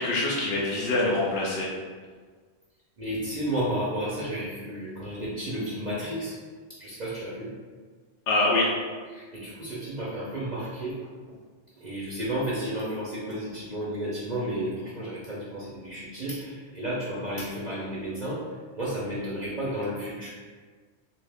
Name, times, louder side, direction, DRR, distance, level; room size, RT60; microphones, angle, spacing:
voice 1, 0.0-1.7 8.3-8.7, left 2 dB, 70° left, -4 dB, 0.8 m, -24 dB
voice 2, 3.0-6.4 6.8-7.5 9.1-11.1 11.8-18.4 18.7-20.3, right 1 dB, 45° right, -8 dB, 0.7 m, -32 dB
3.1 x 2.6 x 3.4 m, 1.5 s
omnidirectional pair, 1.2 m